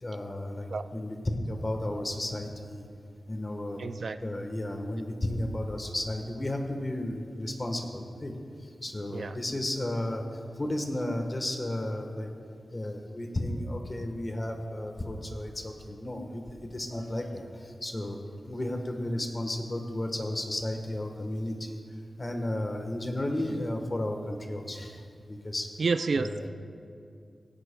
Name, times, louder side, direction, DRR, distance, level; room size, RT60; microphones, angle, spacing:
voice 1, 0.0-2.9 3.3-3.8 4.2-8.3 8.8-10.2 10.6-12.3 12.7-21.8 22.2-25.7 26.2-26.5, left 1 dB, 25° left, 4 dB, 1.2 m, -33 dB
voice 2, 3.8-4.2 9.1-9.4 25.8-26.3, right 4 dB, 55° right, 10 dB, 0.3 m, -29 dB
17.5 x 17.0 x 2.3 m, 2.3 s
wide cardioid pair, 145°, 0 cm